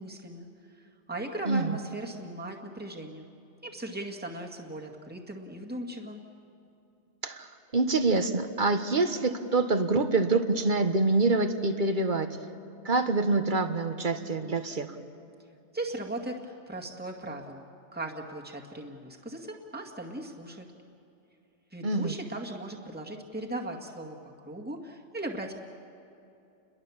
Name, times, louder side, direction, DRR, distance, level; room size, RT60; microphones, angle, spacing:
voice 1, 0.0-3.2 3.6-6.2 15.7-20.7 21.7-25.5, right 1 dB, 10° right, 0 dB, 2.0 m, -38 dB
voice 2, 7.2-12.4 12.8-15.0 21.8-22.1, right 3 dB, 45° right, 8 dB, 1.4 m, -26 dB
29.5 x 22.0 x 7.2 m, 2.7 s
omnidirectional pair, 1.2 m